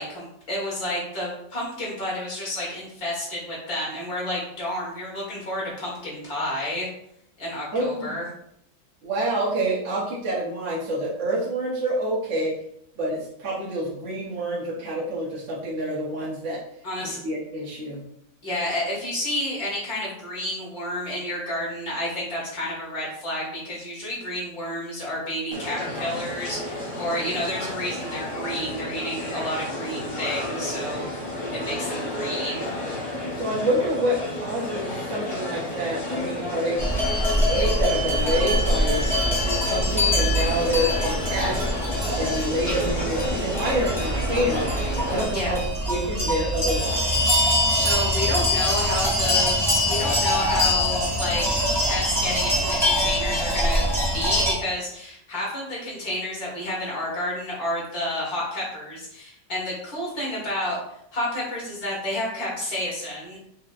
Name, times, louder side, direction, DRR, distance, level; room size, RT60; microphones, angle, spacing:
voice 1, 0.0-6.9 7.4-8.2 16.8-17.2 18.4-31.0 31.5-32.7 45.3-45.5 47.7-49.6 49.9-51.6 51.9-53.9 54.1-60.8 61.1-63.4, left 1 dB, 60° left, -5 dB, 1.9 m, -30 dB
voice 2, 7.7-8.2 9.0-12.5 13.0-16.6 17.2-18.0 33.4-36.9 37.5-39.0 39.7-41.6 42.2-44.7 45.1-45.6 45.9-47.3, right 1 dB, 55° right, -6 dB, 1.0 m, -27 dB
sound 1, 25.5-45.3, left 1 dB, 35° left, 1.1 m, -31 dB
sound 2, 36.8-54.5, left 1 dB, 5° left, 0.4 m, -23 dB
4.9 x 2.8 x 2.4 m, 0.73 s
omnidirectional pair, 1.8 m